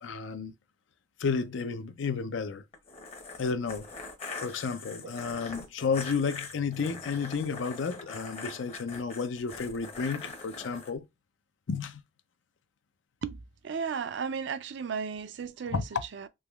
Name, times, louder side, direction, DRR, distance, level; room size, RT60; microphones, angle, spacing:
voice 1, 0.0-0.5 1.2-2.6 3.4-3.9 4.4-11.0 11.7-12.0 15.7-16.0, left 5 dB, 80° left, 0.5 m, -32 dB
sound 1, 2.7-10.9, left 4 dB, 35° left, 0.7 m, -42 dB
voice 2, 13.2-15.8 16.1-16.3, right 6 dB, 65° right, 0.4 m, -35 dB
3.4 x 2.9 x 2.3 m
head